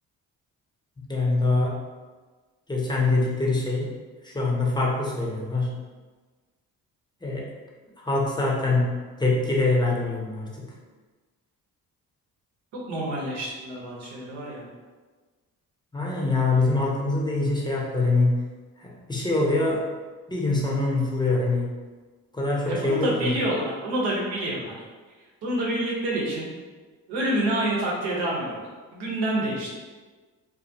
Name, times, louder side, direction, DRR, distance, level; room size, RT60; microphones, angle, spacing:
voice 1, 1.1-1.8 2.7-3.9 4.2-5.8 7.2-7.5 8.0-10.7 15.9-18.4 18.8-19.9 20.3-21.7 22.3-23.3, left 2 dB, 10° left, -3 dB, 0.6 m, -24 dB
voice 2, 12.9-14.7 22.6-24.8 25.4-26.5 27.1-29.7, right 1 dB, 80° right, -4 dB, 0.8 m, -28 dB
2.3 x 2.0 x 2.6 m, 1.4 s
supercardioid pair, 55°, 40 cm